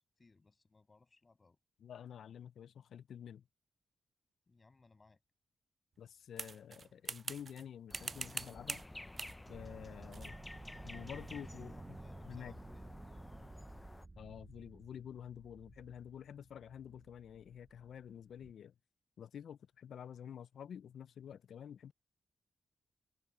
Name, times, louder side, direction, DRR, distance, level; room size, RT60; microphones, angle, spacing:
voice 1, 0.0-1.6 4.5-5.2 11.3-13.0, left 3 dB, 35° left, 6.5 m, -65 dB
voice 2, 1.8-3.5 6.0-8.8 9.5-10.4 10.8-11.7 12.2-12.5 14.2-18.7 19.2-21.9, left 9 dB, 85° left, 0.5 m, -49 dB
sound 1, 6.4-7.6 7.9-8.9 9.2-9.4 10.1-10.3, right 5 dB, 50° right, 0.3 m, -43 dB
sound 2, 7.9-14.1, left 1 dB, 15° left, 0.5 m, -52 dB
sound 3, 9.5-18.5, right 2 dB, 25° right, 5.1 m, -54 dB
cardioid pair, 75°, 0 cm